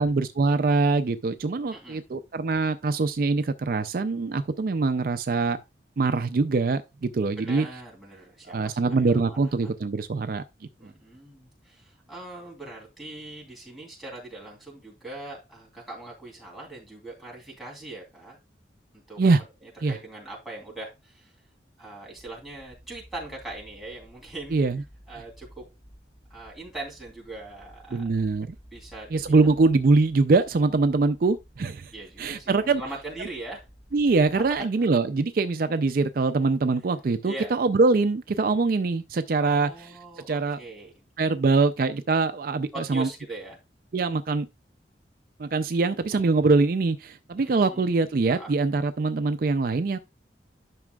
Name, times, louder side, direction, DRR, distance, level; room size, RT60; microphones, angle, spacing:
voice 1, 0.0-5.6 6.0-7.7 8.5-10.4 19.2-19.4 19.8-20.0 24.5-24.8 27.9-28.5 29.1-31.9 32.2-32.8 33.9-39.9 40.3-40.6 41.2-43.1 43.9-44.5 45.4-50.0, right 3 dB, 55° right, 0.4 m, -23 dB
voice 2, 1.7-2.0 7.4-9.7 10.8-18.4 18.9-19.2 19.9-21.3 21.8-24.6 25.1-25.6 26.3-28.0 28.7-29.5 31.9-33.7 34.3-34.9 37.2-37.5 39.4-40.9 42.7-43.6 47.3-48.5, right 2 dB, ahead, 3.1 m, -41 dB
sound 1, 22.2-34.6, equal, 80° left, 4.9 m, -53 dB
10.5 x 6.0 x 2.3 m
head